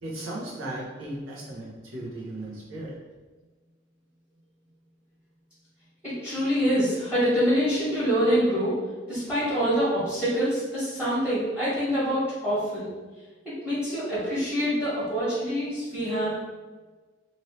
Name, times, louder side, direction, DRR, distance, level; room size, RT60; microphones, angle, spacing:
voice 1, 0.0-2.9, right 1 dB, 80° right, -4 dB, 0.9 m, -36 dB
voice 2, 6.0-8.8 9.1-12.9 13.4-16.3, equal, 5° right, -11 dB, 1.4 m, -25 dB
2.9 x 2.6 x 3.1 m, 1.3 s
head